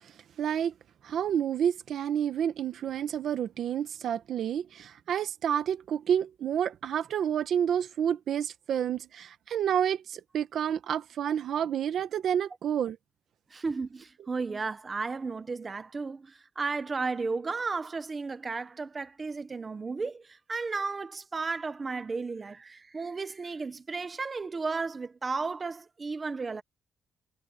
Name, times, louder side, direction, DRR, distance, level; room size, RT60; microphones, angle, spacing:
voice 1, 0.4-0.7 1.0-13.0, right 9 dB, 60° right, 1.3 m, -29 dB
voice 2, 13.5-26.6, right 4 dB, 25° right, 1.0 m, -34 dB
cardioid pair, 165°, 0 cm